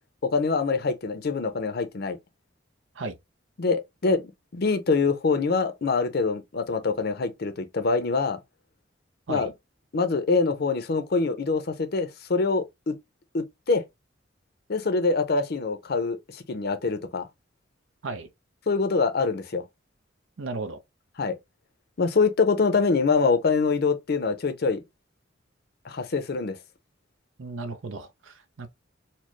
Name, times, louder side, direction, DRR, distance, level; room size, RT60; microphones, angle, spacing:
voice 1, 0.2-2.2 3.6-4.2 4.5-8.4 9.3-9.5 9.9-13.0 13.3-13.8 14.7-17.3 18.7-19.6 21.2-21.4 22.0-24.8 25.8-26.6, left 4 dB, 55° left, 0.6 m, -24 dB
voice 2, 20.4-20.8 27.4-28.7, right 3 dB, 80° right, 0.7 m, -35 dB
4.3 x 2.1 x 3.1 m
head